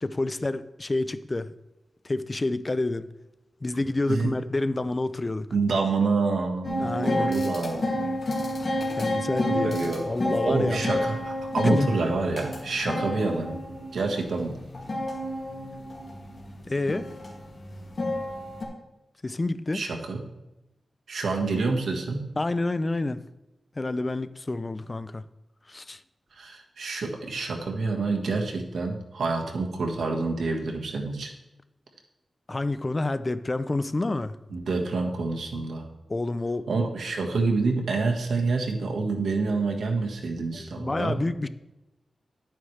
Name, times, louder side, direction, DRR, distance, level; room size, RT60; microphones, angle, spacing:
voice 1, 0.0-1.5 2.0-3.1 3.6-5.5 6.8-7.4 9.0-10.8 11.6-11.9 16.6-17.1 19.2-19.8 22.4-23.3 23.8-25.2 25.7-26.0 32.5-34.4 36.1-36.7 40.5-41.5, left 2 dB, 25° left, 0.4 m, -28 dB
voice 2, 5.5-7.9 9.5-13.6 13.9-14.6 19.7-20.2 21.1-22.3 26.3-31.3 34.5-35.9 36.7-41.2, right 3 dB, 85° right, 1.5 m, -27 dB
sound 1, 6.6-18.7, left 1 dB, 45° left, 2.3 m, -30 dB
11.5 x 9.1 x 3.2 m
wide cardioid pair, 115°, 0 cm